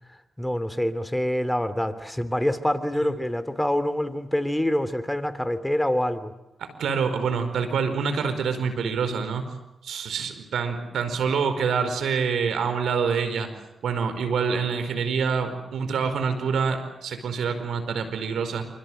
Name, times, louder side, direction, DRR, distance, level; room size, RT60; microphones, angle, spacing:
voice 1, 0.4-6.3, left 1 dB, 10° left, 13 dB, 3.0 m, -26 dB
voice 2, 6.8-9.4 9.8-13.5 13.8-18.6, right 6 dB, 80° right, 9 dB, 4.8 m, -26 dB
28.5 x 25.5 x 7.8 m, 0.91 s
supercardioid pair, 45°, 0 cm